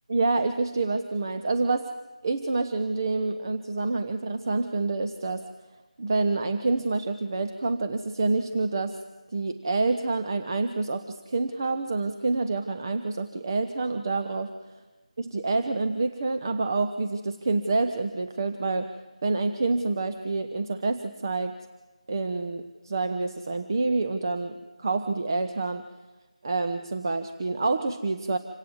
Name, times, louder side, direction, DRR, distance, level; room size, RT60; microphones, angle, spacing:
voice 1, 0.1-1.9 2.2-5.4 6.0-9.0 9.3-14.5 15.2-18.9 19.2-21.6 22.1-25.8 26.4-28.4, right 3 dB, 30° right, 8 dB, 0.9 m, -27 dB
26.5 x 17.5 x 7.2 m, 1.2 s
figure-of-eight pair, 170°, 4 cm